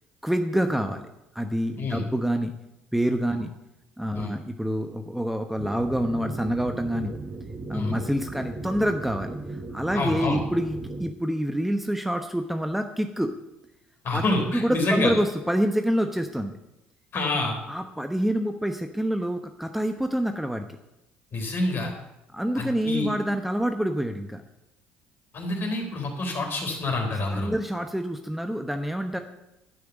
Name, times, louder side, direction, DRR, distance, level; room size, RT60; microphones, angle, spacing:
voice 1, 0.2-1.1 1.3-2.5 2.9-3.5 4.0-7.1 7.7-13.3 14.1-14.2 14.5-16.5 17.7-20.7 22.3-24.4 27.2-29.2, equal, 5° right, 6 dB, 1.0 m, -27 dB
sound 1, 5.6-11.1, right 2 dB, 30° right, 1.2 m, -37 dB
voice 2, 9.9-10.4 14.0-15.1 17.1-17.5 21.3-21.9 22.5-23.1 25.3-27.5, left 2 dB, 50° left, 2 dB, 3.9 m, -27 dB
11.0 x 5.9 x 8.0 m, 0.90 s
hypercardioid pair, 60°, 5 cm